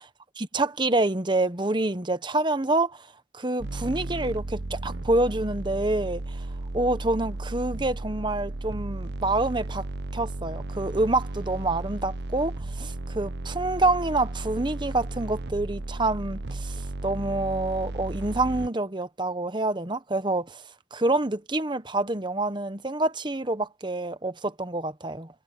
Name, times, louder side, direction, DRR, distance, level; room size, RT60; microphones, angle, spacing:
voice 1, 0.4-3.1 3.3-6.4 6.7-9.8 10.1-20.6 20.9-25.3, right 2 dB, 25° right, 1.1 m, -27 dB
sound 1, 3.6-18.7, right 2 dB, 75° right, 0.9 m, -34 dB
head